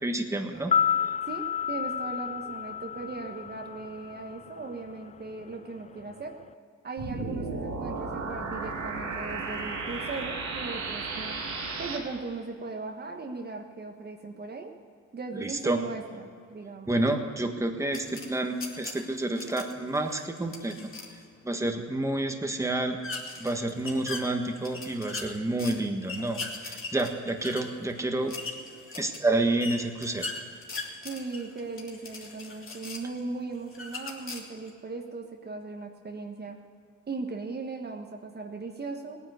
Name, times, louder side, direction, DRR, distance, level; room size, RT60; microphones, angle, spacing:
voice 1, 0.0-0.7 15.3-15.8 16.9-20.7 21.4-23.0 23.4-28.3 29.0-30.2, right 2 dB, 10° right, 3 dB, 1.5 m, -29 dB
sound 1, 0.6-4.7 5.0-5.1, left 8 dB, 25° left, 0.4 m, -30 dB
voice 2, 1.3-6.4 6.8-11.4 11.8-14.7 15.1-17.0 31.0-36.6 37.1-39.2, right 3 dB, 35° right, 3 dB, 1.3 m, -38 dB
sound 2, 7.0-12.0, right 3 dB, 75° right, 3.3 m, -34 dB
sound 3, 17.9-21.2 23.0-25.8 26.0-33.2 33.7-34.7, left 3 dB, 45° left, 2.9 m, -40 dB
17.5 x 9.8 x 8.0 m, 2.3 s
cardioid pair, 90°, 30 cm